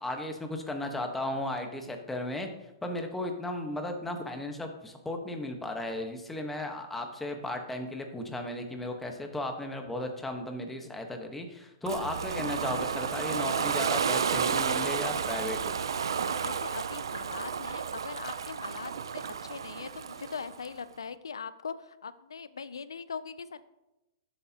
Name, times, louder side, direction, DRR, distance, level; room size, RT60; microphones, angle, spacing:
voice 1, 0.0-2.5 2.8-15.7, left 1 dB, 10° left, 4 dB, 1.3 m, -35 dB
Ocean, 11.9-20.7, right 6 dB, 80° right, 0.5 m, -32 dB
voice 2, 16.4-23.6, left 5 dB, 90° left, 15 dB, 0.5 m, -41 dB
13.0 x 8.0 x 3.0 m, 0.98 s
hypercardioid pair, 120°, 2 cm